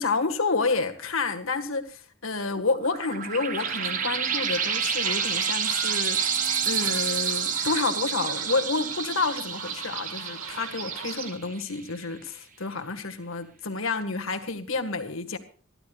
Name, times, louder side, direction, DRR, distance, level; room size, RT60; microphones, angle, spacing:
voice 1, 0.0-6.4 6.7-15.4, left 3 dB, 75° left, 1.9 m, -29 dB
sound 1, 2.6-11.7, right 7 dB, 40° right, 1.2 m, -29 dB
sound 2, 3.6-11.3, right 6 dB, 75° right, 2.1 m, -38 dB
27.5 x 12.0 x 2.5 m
head